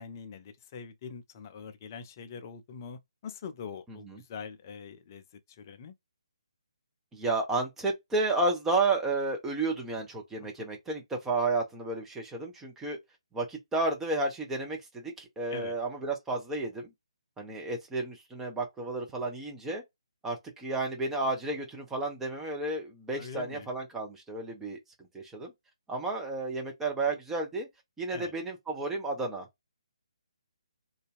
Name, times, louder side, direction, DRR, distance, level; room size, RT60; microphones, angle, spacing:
voice 1, 0.0-5.2 5.5-5.9 15.5-15.7 23.2-23.7 28.1-28.3, left 6 dB, 30° left, 0.5 m, -43 dB
voice 2, 3.9-4.2 7.1-13.0 13.3-16.9 17.4-19.8 20.2-24.8 25.1-25.5 25.9-27.7 28.0-29.5, right 2 dB, 10° right, 0.7 m, -32 dB
2.6 x 2.3 x 2.3 m
figure-of-eight pair, 140°, 3 cm